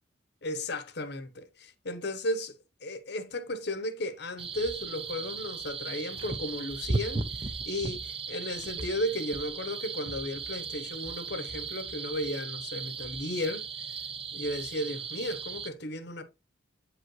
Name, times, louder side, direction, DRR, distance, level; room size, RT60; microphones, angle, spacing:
voice 1, 0.4-2.6 2.8-13.6 14.3-16.2, left 1 dB, 65° left, 1.0 m, -34 dB
sound 1, 4.4-15.7, right 4 dB, 30° right, 0.6 m, -36 dB
8.6 x 5.0 x 3.1 m
head